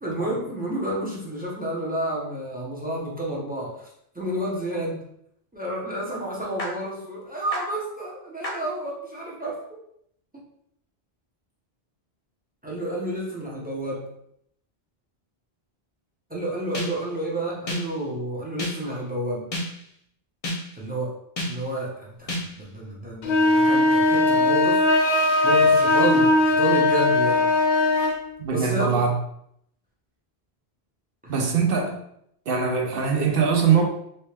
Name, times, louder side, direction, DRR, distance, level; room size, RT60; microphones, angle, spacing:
voice 1, 0.0-3.9 4.1-5.1 5.5-9.8 10.3-10.4 12.6-14.1 16.3-19.5 20.7-21.2 21.5-24.8 25.4-27.5 28.5-29.1 31.2-31.3, right 1 dB, 10° right, -4 dB, 0.8 m, -30 dB
sound 1, 6.6-6.7 7.5-7.6 8.4-8.5 16.7-17.2 17.7-18.1 18.6-19.0 19.5-19.9 20.4-20.9 21.4-21.8 22.3-22.7, left 1 dB, 40° left, 0.7 m, -31 dB
sound 2, 23.2-28.2, left 2 dB, 70° left, 0.8 m, -19 dB
voice 2, 28.4-29.2 31.3-32.0 32.5-33.9, right 6 dB, 65° right, 1 dB, 0.8 m, -22 dB
3.0 x 2.9 x 3.3 m, 0.72 s
omnidirectional pair, 1.1 m